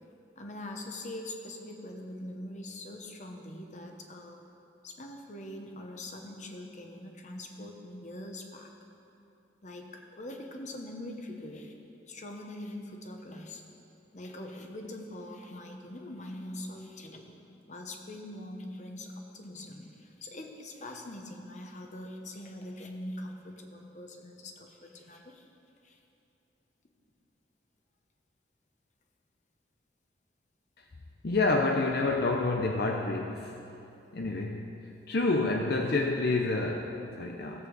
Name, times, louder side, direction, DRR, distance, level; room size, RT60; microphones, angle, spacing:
voice 1, 0.3-4.4 4.8-8.7 9.6-11.7 12.1-13.6 14.1-17.4 17.7-25.5 25.8-26.0, left 1 dB, 40° left, 3 dB, 1.0 m, -43 dB
voice 2, 31.2-33.6 34.1-34.7 35.1-37.7, left 3 dB, 60° left, 2 dB, 0.6 m, -28 dB
16.0 x 8.0 x 4.0 m, 2.8 s
head